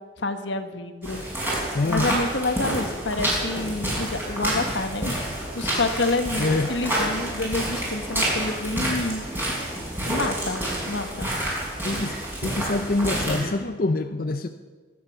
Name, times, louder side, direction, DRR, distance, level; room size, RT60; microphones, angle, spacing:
voice 1, 0.2-9.2 10.0-11.3, left 2 dB, 85° left, 8 dB, 1.4 m, -28 dB
sound 1, 1.0-13.4, right 1 dB, 10° right, 6.2 m, -28 dB
voice 2, 1.7-2.2 6.4-6.7 11.8-14.5, left 2 dB, 50° left, 7 dB, 0.6 m, -25 dB
24.0 x 9.4 x 6.1 m, 1.4 s
head